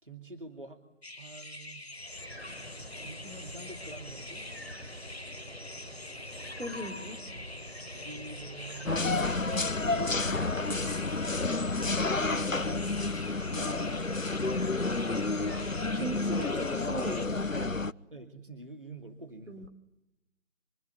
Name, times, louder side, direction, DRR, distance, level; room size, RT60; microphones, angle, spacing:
voice 1, 0.0-0.8 1.2-1.9 2.6-4.5 7.9-9.0 9.9-11.1 13.5-14.1 14.6-15.0 18.1-19.7, right 2 dB, 45° right, 5 dB, 2.3 m, -46 dB
sound 1, 1.0-17.3, left 2 dB, 55° left, 1.1 m, -46 dB
sound 2, 1.9-16.1, equal, 10° right, 6.0 m, -46 dB
voice 2, 6.6-7.3 12.3-12.8 14.8-15.6 15.9-17.8 19.5-19.7, right 2 dB, 65° right, 7 dB, 3.7 m, -40 dB
sound 3, 8.9-17.9, left 3 dB, 90° left, 1.1 m, -30 dB
25.0 x 24.0 x 9.5 m, 0.93 s
figure-of-eight pair, 175°, 38 cm